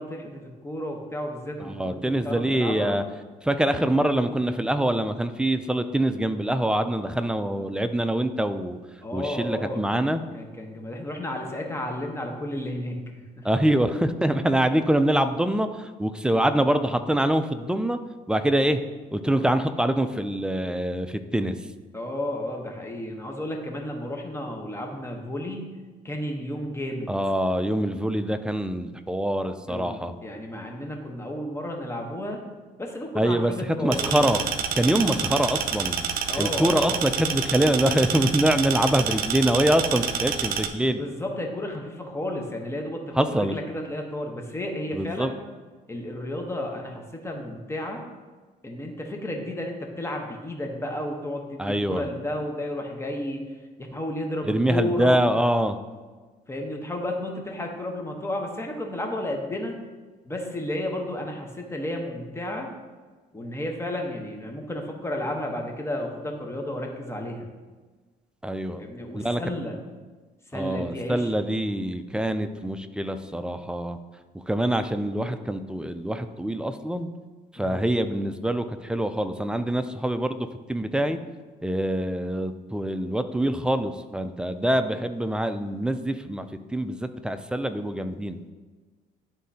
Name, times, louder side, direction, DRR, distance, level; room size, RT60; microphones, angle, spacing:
voice 1, 0.0-3.0 9.0-13.0 13.3-13.5 21.9-25.7 26.0-27.1 29.7-32.4 32.8-34.3 36.3-37.0 40.8-45.4 45.9-48.0 48.6-53.4 53.8-55.2 56.5-59.7 60.2-62.7 63.3-67.5 68.8-69.7 70.5-71.3 77.6-77.8, left 1 dB, 15° left, 2 dB, 1.0 m, -32 dB
voice 2, 1.6-3.0 3.4-8.8 9.1-10.2 13.4-18.0 18.3-18.8 19.1-21.6 27.1-30.1 33.1-33.5 33.8-34.4 34.8-36.0 36.4-41.0 43.1-43.5 44.9-45.3 51.6-52.1 54.4-55.8 68.4-68.8 69.1-69.4 70.5-74.0 74.5-77.1 77.5-81.2 81.6-88.4, right 1 dB, 5° right, 9 dB, 0.3 m, -25 dB
sound 1, 33.9-40.7, right 8 dB, 60° right, 0.5 m, -28 dB
11.0 x 3.7 x 2.8 m, 1.4 s
cardioid pair, 110°, 17 cm